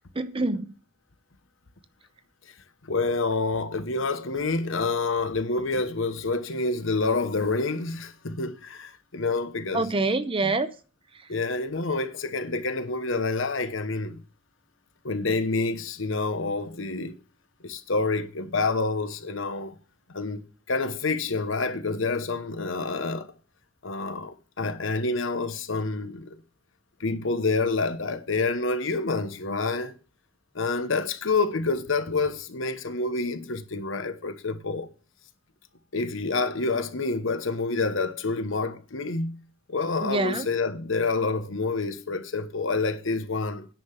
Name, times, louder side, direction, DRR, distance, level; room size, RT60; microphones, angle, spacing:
voice 1, 0.1-0.7 9.7-10.7 40.0-40.5, right 2 dB, 25° right, 0.7 m, -26 dB
voice 2, 2.8-9.9 10.4-10.5 11.3-14.2 15.0-17.2 17.6-19.7 20.1-20.4 20.7-23.3 23.8-26.4 27.0-29.9 30.5-34.9 35.9-39.4 39.7-43.7, left 3 dB, 70° left, 1.1 m, -28 dB
10.0 x 5.7 x 7.5 m
head